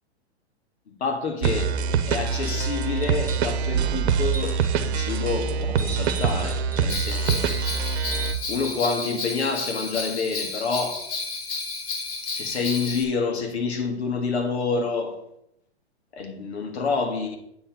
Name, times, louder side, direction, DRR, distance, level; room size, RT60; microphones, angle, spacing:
voice 1, 0.9-1.8 2.1-7.5 8.5-11.0 12.3-15.2 16.1-17.4, left 4 dB, 75° left, 2.1 m, -28 dB
sound 1, 1.4-8.4, right 6 dB, 70° right, 0.9 m, -25 dB
sound 2, 3.0-3.6 4.2-4.8 5.8-7.2 8.0-9.2 10.8-10.9, right 4 dB, 5° left, 1.3 m, -40 dB
Bell, 6.9-13.0, left 3 dB, 40° left, 2.4 m, -32 dB
8.6 x 4.3 x 7.1 m
hypercardioid pair, 130°, 33 cm